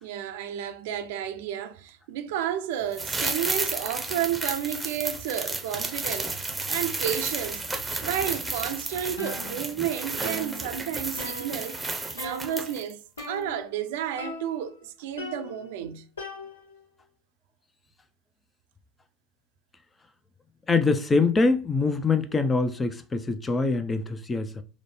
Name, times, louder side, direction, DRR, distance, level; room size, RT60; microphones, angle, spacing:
voice 1, 0.0-13.0 13.3-16.1, right 10 dB, 70° right, 0.5 m, -32 dB
sound 1, 2.9-12.9 13.2-13.3, right 3 dB, 10° right, 0.7 m, -32 dB
sound 2, 9.2-9.9 10.2-11.9 12.2-12.7 13.2-13.8 14.2-14.8 15.2-16.9, left 2 dB, 85° left, 0.9 m, -40 dB
voice 2, 20.7-24.6, left 3 dB, 20° left, 0.5 m, -24 dB
5.0 x 2.1 x 3.2 m
figure-of-eight pair, 75°, 0 cm